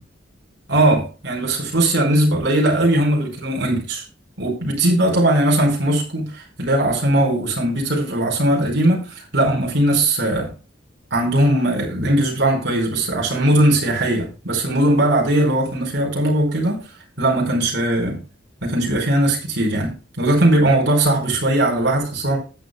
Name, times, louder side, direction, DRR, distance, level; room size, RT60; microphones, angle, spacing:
voice 1, 0.7-4.0 4.4-10.5 11.1-16.8 17.2-18.2 18.6-22.4, right 1 dB, 75° right, 4.6 m, -19 dB
19.5 x 7.9 x 2.3 m
head